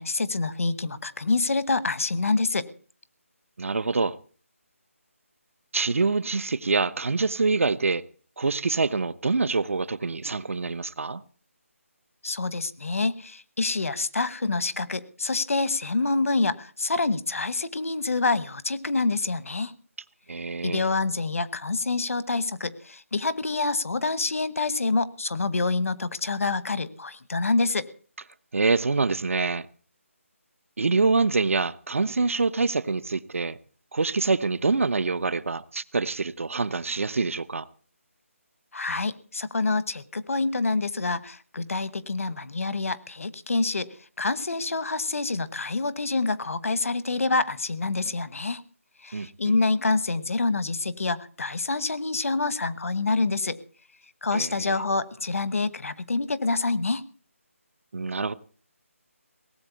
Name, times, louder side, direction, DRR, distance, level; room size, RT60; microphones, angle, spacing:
voice 1, 0.0-2.7 12.2-19.7 20.6-27.9 38.7-43.9 44.2-48.6 49.0-53.6 54.2-57.0, left 3 dB, 70° left, 1.1 m, -27 dB
voice 2, 3.6-4.1 5.7-8.0 8.4-11.2 20.3-20.8 28.5-29.7 30.8-33.6 33.9-37.7 49.1-49.5 54.3-54.8 57.9-58.3, right 4 dB, 65° right, 0.8 m, -25 dB
18.0 x 7.7 x 8.2 m
figure-of-eight pair, 175°, 8 cm